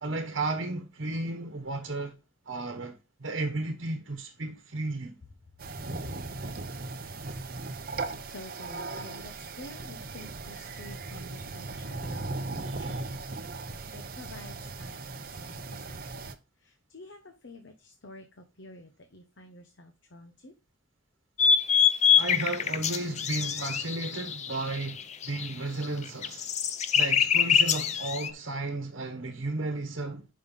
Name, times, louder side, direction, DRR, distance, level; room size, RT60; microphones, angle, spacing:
voice 1, 0.0-2.2 2.5-5.2 12.6-13.0 22.2-26.5 26.9-30.3, right 2 dB, 75° right, 1.1 m, -34 dB
sound 1, 5.6-16.4, right 3 dB, 45° right, 0.7 m, -38 dB
voice 2, 8.3-12.4 12.6-13.0 13.9-16.3 16.9-18.2 18.6-20.5, left 1 dB, 70° left, 0.9 m, -49 dB
sound 2, 21.4-25.5 25.8-28.3, left 7 dB, 35° left, 0.5 m, -24 dB
5.6 x 5.2 x 5.6 m
head